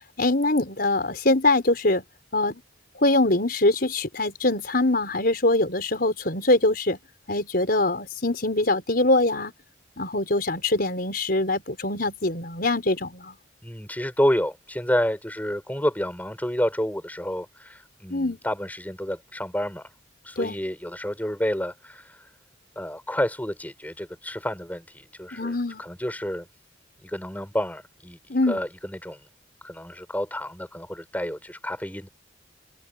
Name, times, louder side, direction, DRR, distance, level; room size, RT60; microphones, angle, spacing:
voice 1, 0.2-2.0 2.3-2.6 3.0-7.0 7.3-9.5 10.0-13.3 18.1-18.4 20.4-20.6 25.3-25.8 28.3-28.6, left 2 dB, 50° left, 5.2 m, -23 dB
voice 2, 13.6-19.9 20.2-22.3 22.8-26.5 27.0-29.3 29.6-32.1, equal, 10° left, 6.1 m, -29 dB
head